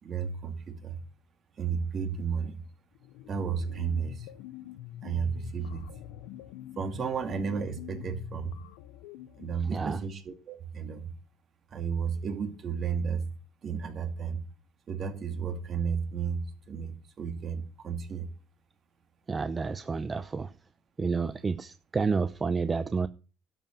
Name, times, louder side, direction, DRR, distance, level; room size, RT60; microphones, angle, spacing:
voice 1, 0.0-1.0 1.6-2.6 3.3-4.3 5.0-5.9 6.8-8.6 9.4-11.0 11.7-13.2 13.6-14.4 14.9-18.3, right 6 dB, 45° right, 2.4 m, -33 dB
sound 1, 2.9-10.1, left 12 dB, 90° left, 0.5 m, -45 dB
voice 2, 9.6-10.0 19.3-20.5 21.0-23.1, right 4 dB, 25° right, 0.6 m, -30 dB
12.0 x 5.4 x 7.4 m
supercardioid pair, 95°, 0 cm